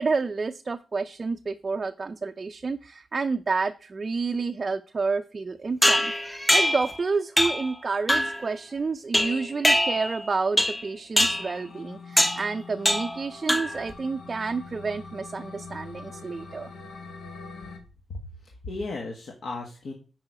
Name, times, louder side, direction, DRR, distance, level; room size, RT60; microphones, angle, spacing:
voice 1, 0.0-16.7, right 4 dB, 35° right, 6 dB, 0.4 m, -29 dB
sound 1, 5.8-6.9 7.4-7.7 8.1-8.4 9.1-10.2 10.6-10.9 11.2-11.5 12.2-12.5 12.9-13.2 13.5-13.9, equal, 10° left, 0.7 m, -23 dB
sound 2, 11.3-17.8, left 4 dB, 90° left, 1.4 m, -43 dB
voice 2, 18.1-19.9, left 3 dB, 70° left, 1 dB, 1.4 m, -35 dB
8.8 x 4.9 x 4.9 m, 0.36 s
wide cardioid pair, 135°, 0 cm